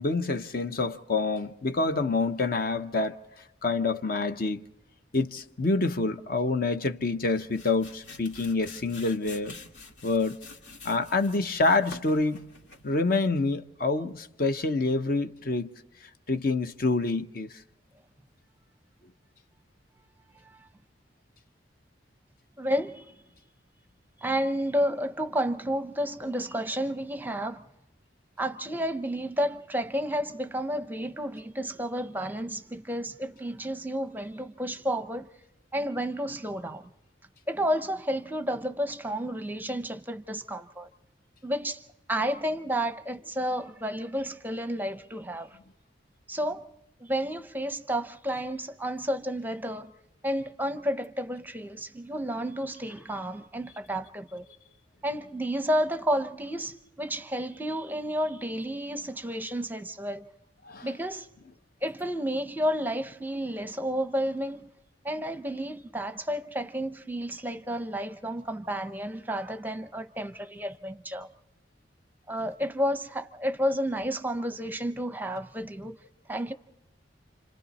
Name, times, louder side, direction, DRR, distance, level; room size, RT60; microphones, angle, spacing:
voice 1, 0.0-3.2 3.6-4.7 5.1-9.5 10.0-10.4 10.8-12.4 12.8-15.8 16.3-17.6 60.7-60.9, left 3 dB, 50° left, 0.8 m, -27 dB
sound 1, 7.2-13.0, left 3 dB, 70° left, 2.4 m, -48 dB
voice 2, 22.6-23.1 24.2-27.6 28.4-35.3 35.7-36.9 37.5-40.9 41.4-41.8 42.1-45.6 46.3-46.7 47.0-49.9 50.2-54.5 55.0-60.3 60.8-61.3 61.8-64.7 65.0-71.3 72.3-76.0 76.3-76.5, equal, 10° right, 0.7 m, -31 dB
30.0 x 26.5 x 4.2 m
head